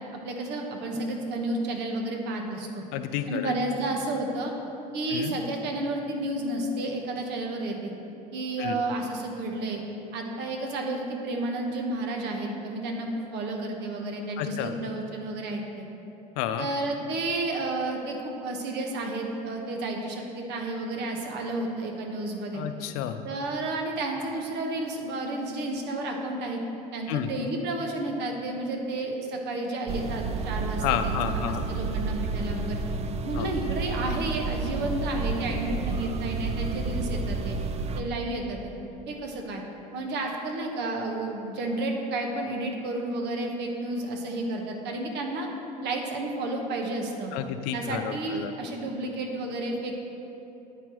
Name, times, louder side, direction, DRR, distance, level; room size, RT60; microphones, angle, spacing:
voice 1, 0.2-2.8 3.3-4.5 4.9-7.9 8.3-9.8 10.1-15.8 16.6-22.6 23.2-26.6 26.9-32.8 33.2-37.6 38.0-38.7 39.1-39.6 39.9-45.5 45.8-47.3 47.7-49.9, right 2 dB, 60° right, 2 dB, 1.1 m, -31 dB
voice 2, 2.9-3.6 5.1-5.4 8.6-8.8 14.4-14.7 16.4-16.7 22.5-23.2 27.1-27.3 30.8-31.7 33.3-33.5 47.3-48.5, left 10 dB, 70° left, 9 dB, 0.5 m, -30 dB
sound 1, 29.9-38.0, right 3 dB, 30° right, 0.5 m, -30 dB
9.1 x 4.5 x 4.4 m, 2.9 s
hypercardioid pair, 70°, 20 cm